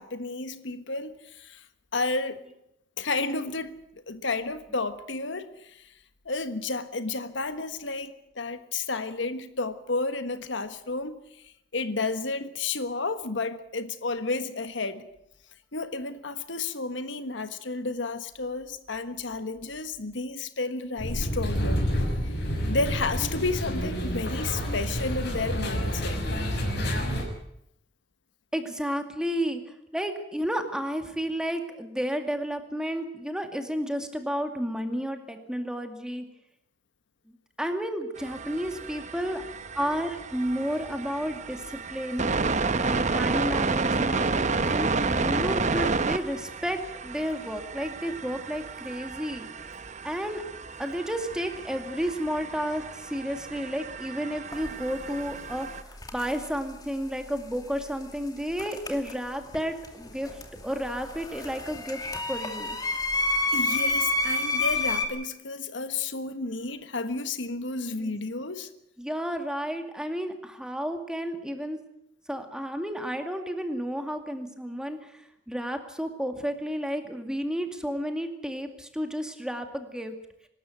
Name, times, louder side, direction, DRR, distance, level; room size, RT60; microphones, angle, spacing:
voice 1, 0.0-1.6 1.9-2.4 3.0-3.8 4.1-5.8 6.2-11.2 11.7-15.1 15.7-21.8 22.7-26.2 63.5-68.7, left 3 dB, 80° left, 10 dB, 1.5 m, -31 dB
sound 1, 21.0-27.2, equal, 60° left, 6.3 m, -29 dB
voice 2, 28.5-29.6 29.9-36.2 37.3-39.4 39.7-42.3 42.8-49.5 50.0-50.4 50.8-62.0 62.3-62.8 68.0-68.2 69.0-71.8 72.3-80.2, equal, 5° right, 5 dB, 2.3 m, -32 dB
sound 2, 38.2-55.8, right 4 dB, 40° right, 0.9 m, -31 dB
sound 3, 54.5-54.7 55.9-56.5 58.6-59.6 59.8-65.1, left 2 dB, 20° left, 2.5 m, -29 dB
24.5 x 13.0 x 9.4 m, 0.79 s
head